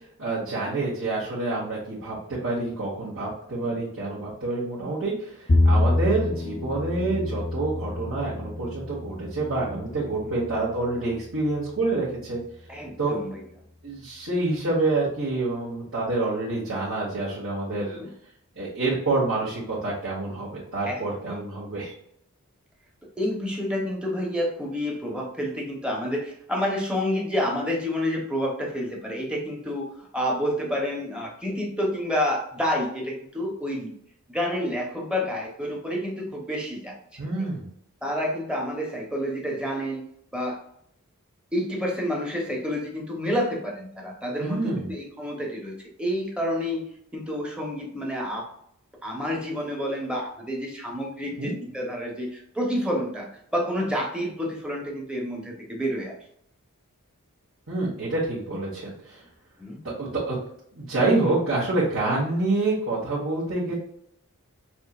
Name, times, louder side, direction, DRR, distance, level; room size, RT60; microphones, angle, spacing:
voice 1, 0.2-12.4 13.0-13.2 13.8-18.0 18.5-21.9 37.2-37.7 44.4-44.9 51.4-51.5 57.7-59.2 59.8-60.4 60.7-63.7, right 2 dB, 65° right, -8 dB, 1.5 m, -27 dB
Bowed string instrument, 5.5-11.8, left 2 dB, 40° left, 0.6 m, -27 dB
voice 2, 12.7-13.4 17.7-18.1 20.9-21.0 21.3-21.4 23.2-33.9 34.3-36.9 37.4-37.5 38.0-40.0 40.3-40.6 41.5-48.5 49.0-56.2 59.6-59.8 63.7-63.8, equal, 5° right, -1 dB, 0.9 m, -29 dB
6.0 x 3.0 x 2.4 m, 0.71 s
head